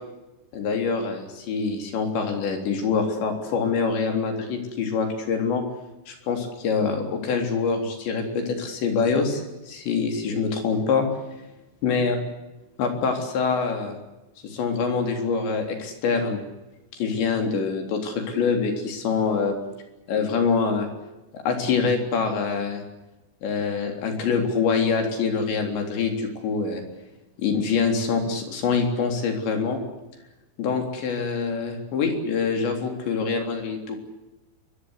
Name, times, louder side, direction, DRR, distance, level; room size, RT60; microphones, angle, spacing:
voice 1, 0.5-5.6 6.1-11.1 11.8-12.2 12.8-14.0 14.4-16.4 16.9-19.6 20.1-20.9 21.3-22.8 23.4-26.8 27.4-29.8 30.6-34.0, left 5 dB, 65° left, 5 dB, 5.8 m, -25 dB
25.5 x 23.0 x 8.2 m, 1.0 s
omnidirectional pair, 5.6 m